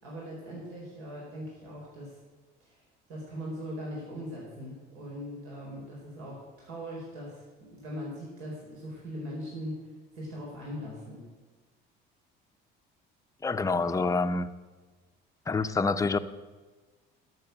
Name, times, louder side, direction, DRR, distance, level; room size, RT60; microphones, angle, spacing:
voice 1, 0.0-2.2 2.6-2.8 3.1-7.4 7.7-9.9 10.1-11.2, equal, 75° right, -4 dB, 4.4 m, -40 dB
voice 2, 13.4-14.5 15.5-16.2, left 3 dB, 15° left, 9 dB, 0.6 m, -27 dB
12.5 x 7.2 x 7.9 m, 1.3 s
cardioid pair, 110°, 21 cm